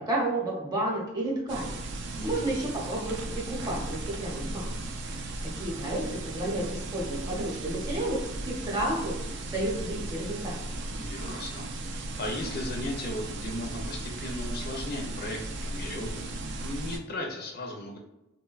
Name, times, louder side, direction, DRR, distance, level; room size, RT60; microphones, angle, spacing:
voice 1, 0.0-1.8 2.2-4.7 5.6-8.2 8.4-9.1 9.5-10.5, right 1 dB, 20° right, -4 dB, 0.7 m, -31 dB
sound 1, 1.5-17.0, right 2 dB, 60° right, 0.3 m, -36 dB
voice 2, 2.2-2.7 11.0-18.0, left 1 dB, 50° left, 2 dB, 0.4 m, -37 dB
3.0 x 2.1 x 2.3 m, 0.96 s
head